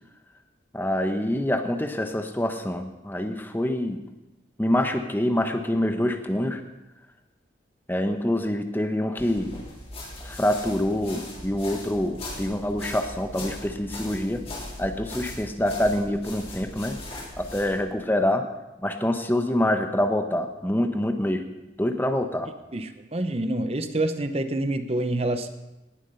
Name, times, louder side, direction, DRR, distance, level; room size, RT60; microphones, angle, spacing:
voice 1, 0.7-4.0 4.6-6.6 7.9-9.5 10.2-14.4 14.8-17.0 17.4-18.5 18.8-21.4 21.8-22.5, left 1 dB, 10° left, 6 dB, 0.9 m, -26 dB
sound 1, 9.2-17.8, left 1 dB, 30° left, 3.6 m, -39 dB
voice 2, 22.7-25.5, right 1 dB, 30° right, 9 dB, 0.8 m, -27 dB
19.0 x 7.3 x 5.5 m, 1.0 s
head